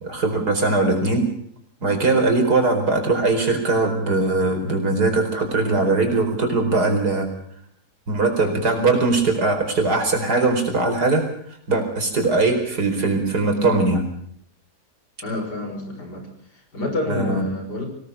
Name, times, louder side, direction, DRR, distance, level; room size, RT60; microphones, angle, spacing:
voice 1, 0.0-1.2 1.8-7.3 8.1-11.2 11.7-14.0 17.1-17.4, right 3 dB, 75° right, 5 dB, 5.2 m, -20 dB
voice 2, 15.2-17.9, left 2 dB, 80° left, 4 dB, 6.6 m, -29 dB
25.0 x 18.5 x 6.9 m, 0.67 s
omnidirectional pair, 1.7 m